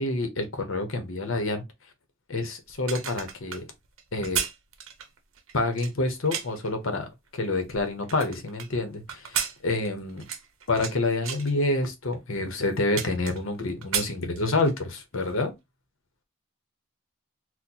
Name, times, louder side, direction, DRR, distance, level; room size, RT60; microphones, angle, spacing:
voice 1, 0.0-1.6 2.3-3.7 4.1-4.4 5.5-10.3 10.7-15.5, left 2 dB, 70° left, 0.9 m, -28 dB
sound 1, 2.7-6.7 7.3-8.7 9.1-10.9 11.2-11.5 12.1-12.2 12.5-13.6 13.8-14.8 15.2-15.3, right 8 dB, 75° right, 0.7 m, -33 dB
4.3 x 2.2 x 2.7 m
head